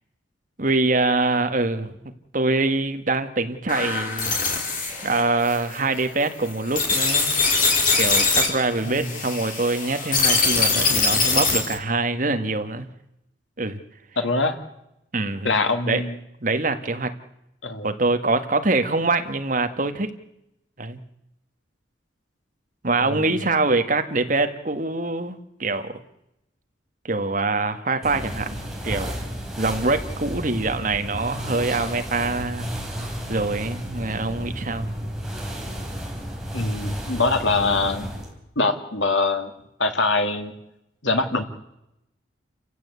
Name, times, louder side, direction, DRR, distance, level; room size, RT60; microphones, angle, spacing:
voice 1, 0.6-2.0 2.3-4.4 5.0-7.4 8.0-12.9 13.6-13.8 15.1-15.5 15.8-16.1 16.4-17.2 17.8-20.2 20.8-21.0 22.8-26.0 27.0-29.3 29.6-32.7 33.3-34.9, right 3 dB, 45° right, 7 dB, 1.7 m, -24 dB
sound 1, 3.7-11.8, left 4 dB, 45° left, 5.0 m, -23 dB
voice 2, 8.8-9.1 14.2-14.6 15.4-16.1 17.6-17.9 23.0-23.4 36.5-38.1 38.6-39.5 39.8-40.5 41.0-41.4, left 3 dB, 90° left, 6 dB, 2.7 m, -23 dB
sound 2, 28.0-38.3, equal, 5° right, 4.2 m, -33 dB
29.5 x 15.5 x 8.4 m, 0.86 s
head